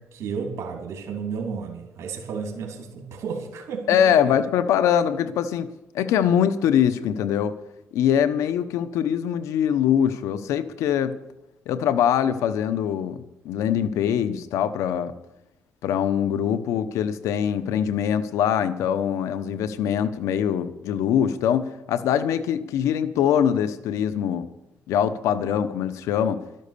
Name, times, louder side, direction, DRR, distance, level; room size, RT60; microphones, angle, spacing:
voice 1, 0.0-4.4, right 5 dB, 70° right, 2 dB, 3.1 m, -33 dB
voice 2, 3.9-5.7 5.9-7.5 7.9-11.1 11.7-15.1 15.8-24.5 24.9-26.4, left 9 dB, 90° left, 12 dB, 1.0 m, -23 dB
12.5 x 12.0 x 6.8 m, 0.91 s
cardioid pair, 95°, 5 cm